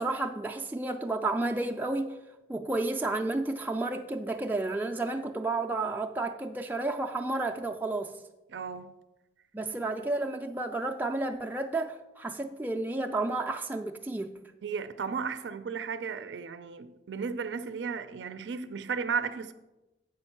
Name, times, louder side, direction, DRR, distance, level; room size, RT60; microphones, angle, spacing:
voice 1, 0.0-2.2 2.5-8.1 9.5-14.3, right 2 dB, 10° right, 0.3 m, -31 dB
voice 2, 8.5-8.9 14.6-19.5, right 5 dB, 85° right, 0.4 m, -34 dB
7.7 x 5.3 x 5.8 m
head